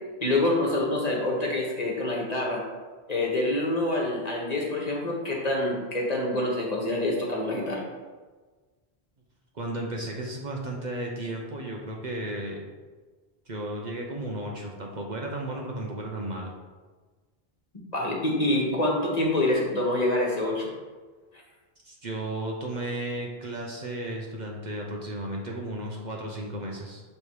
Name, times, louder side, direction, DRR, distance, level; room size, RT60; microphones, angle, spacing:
voice 1, 0.2-2.6 3.1-7.8 17.9-20.7, left 1 dB, 40° left, -2 dB, 1.4 m, -26 dB
voice 2, 9.5-12.6 13.5-16.5 21.8-27.0, right 1 dB, 50° right, -1 dB, 0.9 m, -34 dB
7.0 x 3.3 x 4.7 m, 1.3 s
omnidirectional pair, 1.0 m